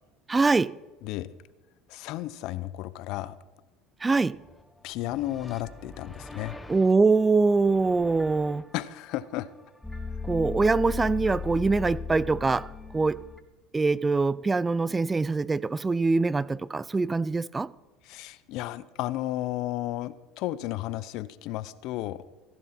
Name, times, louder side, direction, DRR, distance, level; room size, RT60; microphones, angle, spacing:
voice 1, 0.3-0.7 4.0-4.4 6.7-8.6 10.2-12.7 12.9-13.2 13.7-17.7, right 3 dB, 20° right, 0.3 m, -23 dB
voice 2, 1.9-3.4 4.8-6.6 8.7-9.5 18.0-22.2, left 15 dB, 65° left, 0.6 m, -33 dB
sound 1, 4.4-4.6 4.9-8.6 9.8-13.4, left 5 dB, 10° left, 0.9 m, -38 dB
15.0 x 10.5 x 4.3 m
supercardioid pair, 95°, 0 cm